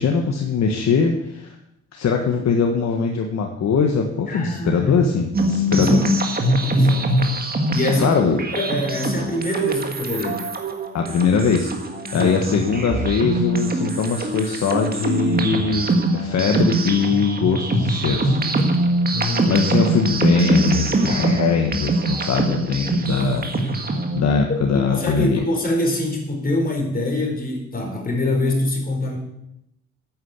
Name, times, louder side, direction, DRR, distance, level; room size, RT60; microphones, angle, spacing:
voice 1, 0.0-1.5 1.9-6.0 8.0-8.4 10.9-11.7 12.1-18.4 19.4-23.5 24.1-25.4, left 5 dB, 60° left, 2 dB, 1.5 m, -21 dB
voice 2, 4.3-5.1 5.7-6.1 6.6-7.3 7.7-8.2 8.5-10.4 12.1-12.4 19.1-19.5 24.5-24.6 24.8-29.2, left 1 dB, 30° left, 1 dB, 4.3 m, -24 dB
sound 1, 5.3-24.2, right 2 dB, 30° right, 1.9 m, -23 dB
9.2 x 8.9 x 8.3 m, 0.81 s
cardioid pair, 90°, 30 cm